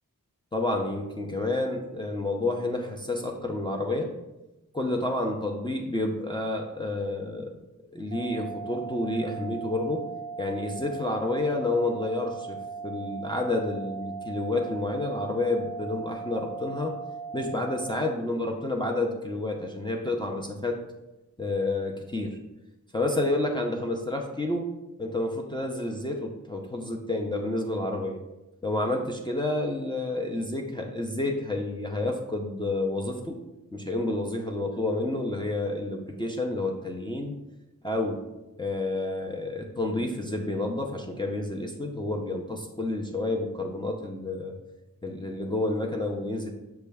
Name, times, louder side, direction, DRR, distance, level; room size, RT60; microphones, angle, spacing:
voice 1, 0.5-4.1 4.7-7.6 7.9-10.0 10.4-12.6 12.8-16.9 17.3-20.8 21.4-22.4 22.9-24.7 25.0-28.2 28.6-33.4 33.7-37.3 37.8-38.2 38.6-44.5 45.0-46.5, left 2 dB, 15° left, 0 dB, 0.5 m, -29 dB
sound 1, 8.1-18.1, right 5 dB, 55° right, 0.4 m, -38 dB
6.1 x 2.3 x 3.4 m, 1.0 s
wide cardioid pair, 55°, 33 cm